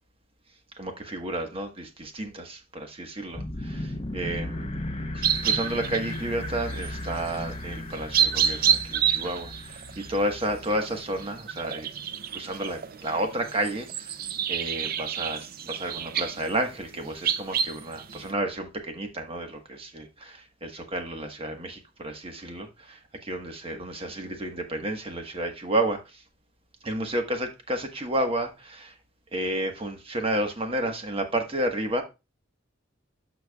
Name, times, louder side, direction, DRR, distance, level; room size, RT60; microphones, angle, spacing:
voice 1, 0.8-4.7 5.1-11.9 12.3-14.1 14.5-26.2 26.8-28.9 29.3-32.0, right 1 dB, 30° right, 1.3 m, -31 dB
sound 1, 3.3-11.4, left 1 dB, 30° left, 0.8 m, -36 dB
sound 2, 5.2-7.5 7.9-18.3, right 8 dB, 50° right, 0.5 m, -29 dB
13.0 x 4.6 x 2.3 m
head